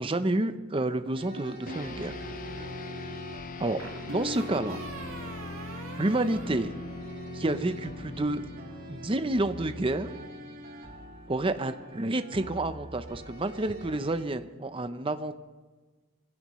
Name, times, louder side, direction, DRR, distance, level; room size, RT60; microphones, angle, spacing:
voice 1, 0.0-2.1 3.6-3.8 4.1-4.8 6.0-6.7 7.3-8.5 8.9-10.1 11.3-15.4, right 2 dB, 25° right, 9 dB, 0.7 m, -29 dB
sound 1, 1.1-14.2, right 1 dB, 45° right, 2.4 m, -45 dB
sound 2, 1.1-1.9 3.8-7.4, right 1 dB, 80° right, 1.6 m, -42 dB
sound 3, 1.7-11.3, left 3 dB, 40° left, 0.5 m, -42 dB
22.5 x 16.0 x 3.1 m, 1.4 s
head